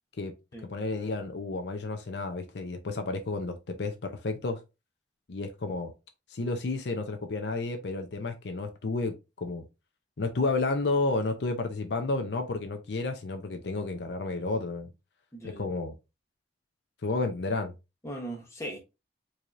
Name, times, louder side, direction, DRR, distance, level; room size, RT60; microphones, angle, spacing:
voice 1, 0.7-4.6 5.3-5.9 6.3-9.7 10.2-14.9 15.4-15.9 17.0-17.7, left 3 dB, 70° left, 0.6 m, -31 dB
voice 2, 15.3-15.6 18.0-18.8, right 1 dB, 15° left, 1.0 m, -39 dB
4.7 x 2.8 x 2.5 m
head